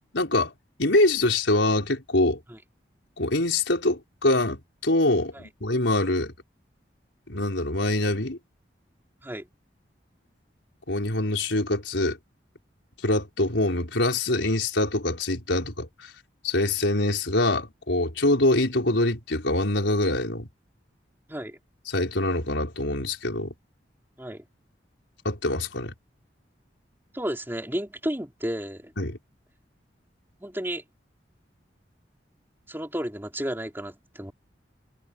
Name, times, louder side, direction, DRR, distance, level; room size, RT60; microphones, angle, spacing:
voice 1, 0.1-0.5 0.8-2.4 3.2-6.3 7.3-8.4 10.9-12.2 13.0-16.1 16.4-20.5 21.9-23.5 25.2-25.9 29.0-29.2, left 2 dB, 90° left, 4.7 m, -24 dB
voice 2, 27.1-28.9 30.4-30.8 32.7-34.3, equal, 10° right, 3.5 m, -32 dB
head